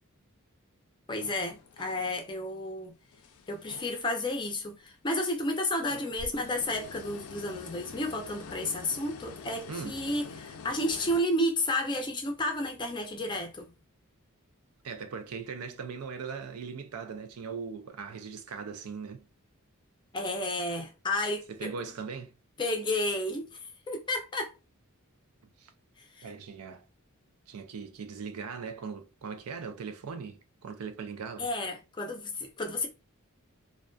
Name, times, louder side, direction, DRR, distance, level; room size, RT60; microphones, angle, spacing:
voice 1, 1.1-3.0 3.5-13.7 20.1-21.7 22.6-23.6 23.9-24.5 26.2-26.3 31.4-32.9, left 1 dB, 20° left, 0.5 m, -31 dB
sound 1, 1.2-2.4 2.8-4.5 4.8-4.9 5.7-11.2, left 5 dB, 80° left, 0.4 m, -46 dB
voice 2, 14.8-19.2 21.5-22.3 25.6-25.7 26.2-26.8 27.5-31.5, right 5 dB, 85° right, 0.4 m, -39 dB
2.5 x 2.2 x 2.2 m
head